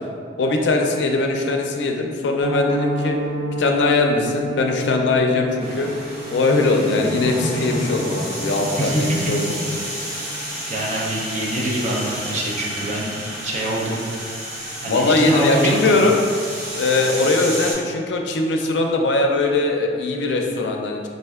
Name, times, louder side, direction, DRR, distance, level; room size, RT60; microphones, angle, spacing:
voice 1, 0.4-3.2 3.6-5.9 6.3-9.5 14.9-16.1 16.8-21.1, left 2 dB, 80° left, 2 dB, 0.4 m, -20 dB
Piano, 2.4-13.3 13.6-13.8 14.1-14.2 14.6-14.8 15.2-15.3, right 1 dB, 20° right, 0.8 m, -32 dB
sound 1, 5.6-17.7, equal, 75° right, 1.3 m, -30 dB
voice 2, 8.8-9.3 10.7-13.2 13.4-14.0 14.8-16.0, right 1 dB, 40° right, -3 dB, 0.5 m, -25 dB
4.2 x 2.5 x 2.3 m, 2.2 s
head